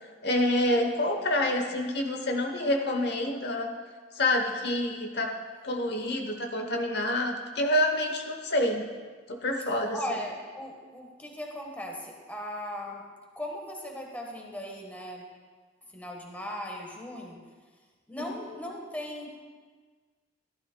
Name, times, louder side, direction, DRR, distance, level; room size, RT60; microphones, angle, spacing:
voice 1, 0.2-3.7 4.2-5.3 5.6-8.9 9.3-10.0 18.3-18.4, left 1 dB, 60° left, 3 dB, 0.9 m, -27 dB
voice 2, 9.9-13.1 13.4-15.3 15.9-17.4 18.1-19.3, equal, 10° left, 0 dB, 1.2 m, -38 dB
13.5 x 12.0 x 2.2 m, 1.5 s
head